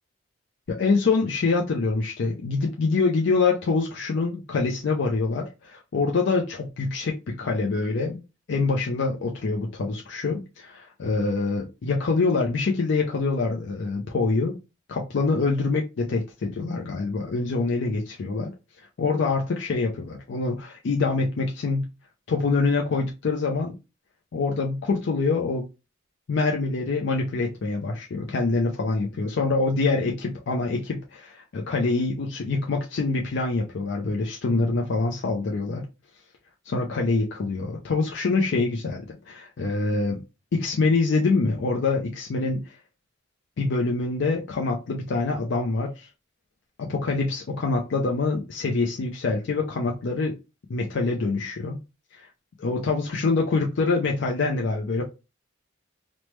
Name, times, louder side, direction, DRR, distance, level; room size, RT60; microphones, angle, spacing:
voice 1, 0.7-8.2 8.5-14.5 14.9-18.5 18.8-21.9 22.3-23.7 24.3-25.7 26.3-35.9 36.7-40.2 40.5-42.7 43.6-46.1 46.8-50.4 50.7-51.8 52.1-52.3 52.6-55.0, left 3 dB, 65° left, 0.4 m, -25 dB
3.1 x 2.0 x 3.1 m
head